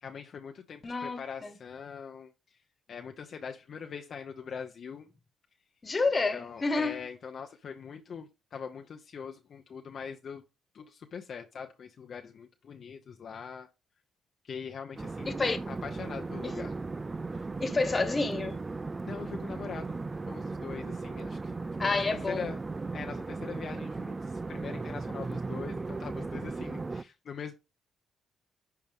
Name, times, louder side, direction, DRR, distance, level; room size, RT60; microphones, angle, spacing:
voice 1, 0.0-2.6 2.9-5.1 6.3-10.4 10.7-13.7 14.4-15.4 15.7-16.8 17.3-17.5 19.0-20.0 20.3-21.5 21.8-22.6 22.9-27.5, left 6 dB, 55° left, 0.8 m, -42 dB
voice 2, 0.8-1.5 5.8-7.0 15.2-15.6 16.4-16.5 17.6-18.6 21.8-22.6, left 3 dB, 30° left, 1.5 m, -29 dB
sound 1, 15.0-27.0, right 3 dB, 25° right, 0.3 m, -37 dB
10.5 x 4.7 x 3.6 m
cardioid pair, 90°, 0 cm